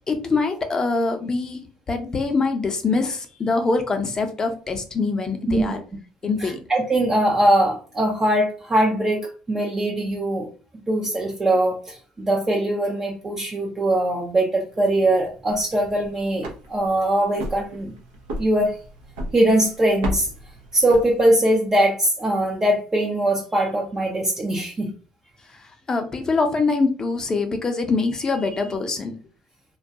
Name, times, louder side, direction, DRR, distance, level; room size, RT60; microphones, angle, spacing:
voice 1, 0.1-5.8 6.2-6.6 25.9-29.1, left 3 dB, 30° left, 7 dB, 0.5 m, -24 dB
voice 2, 5.5-5.8 6.2-10.5 10.9-17.9 18.4-18.8 19.3-20.3 20.7-24.9, right 1 dB, 25° right, 0 dB, 0.5 m, -21 dB
sound 1, 15.3-21.6, equal, 80° right, 0.6 m, -35 dB
2.2 x 2.2 x 2.6 m, 0.38 s
supercardioid pair, 80°, 2 cm